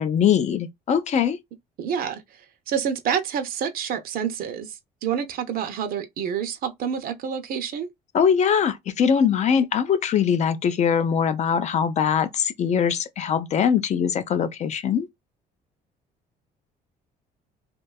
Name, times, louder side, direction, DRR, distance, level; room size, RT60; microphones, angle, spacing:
voice 1, 0.0-1.4 8.1-15.1, left 7 dB, 45° left, 0.4 m, -22 dB
voice 2, 1.8-7.9, right 8 dB, 60° right, 0.5 m, -28 dB
2.6 x 2.2 x 2.3 m
cardioid pair, 110°, 17 cm